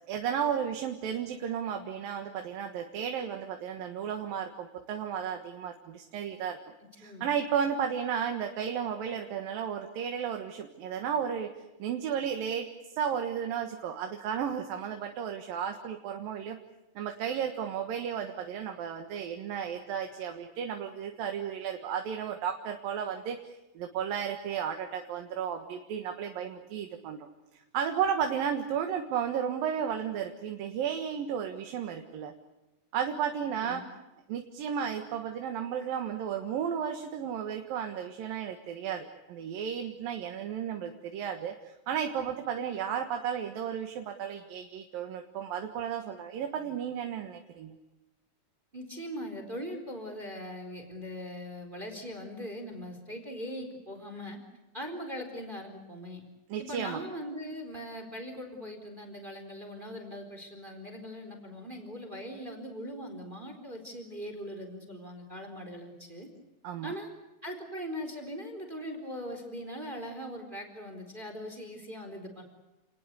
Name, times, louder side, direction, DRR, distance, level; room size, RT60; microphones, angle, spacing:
voice 1, 0.1-6.6 6.9-11.5 11.8-12.7 12.9-16.6 17.0-27.3 27.7-32.3 32.9-33.8 34.3-47.8 56.5-57.0 66.6-66.9, right 8 dB, 75° right, 5 dB, 3.2 m, -33 dB
voice 2, 7.0-7.3 33.6-33.9 48.7-54.4 54.7-56.2 56.6-66.3 66.8-67.1 67.4-72.4, equal, 15° right, 5 dB, 4.0 m, -40 dB
29.5 x 20.0 x 8.2 m, 1.0 s
omnidirectional pair, 4.2 m